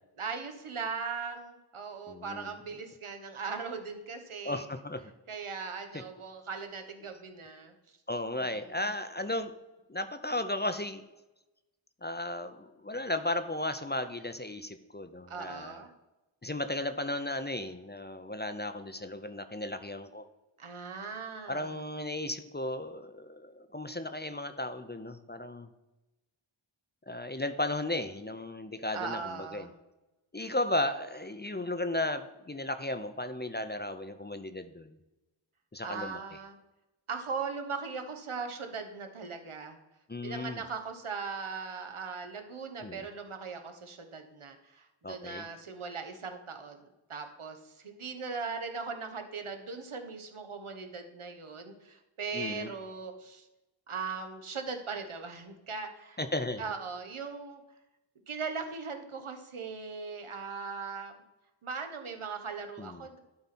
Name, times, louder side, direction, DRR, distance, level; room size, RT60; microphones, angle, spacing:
voice 1, 0.2-4.6 5.3-7.7 8.4-8.8 15.3-15.9 20.6-21.8 28.9-29.7 35.8-36.6 37.1-39.8 40.2-53.5 53.9-56.2 56.6-57.6 58.3-61.1 61.6-63.2, right 5 dB, 80° right, 6 dB, 1.1 m, -39 dB
voice 2, 2.1-2.5 4.4-5.0 8.1-9.5 9.9-11.0 12.0-15.8 16.4-20.2 21.5-25.7 27.1-29.7 30.3-35.0 35.7-36.2 40.1-40.6 42.8-43.1 45.0-45.5 52.3-52.7 56.2-56.6 62.8-63.0, left 1 dB, 20° left, 9 dB, 0.5 m, -35 dB
11.5 x 4.3 x 4.2 m, 1.0 s
wide cardioid pair, 55°, 49 cm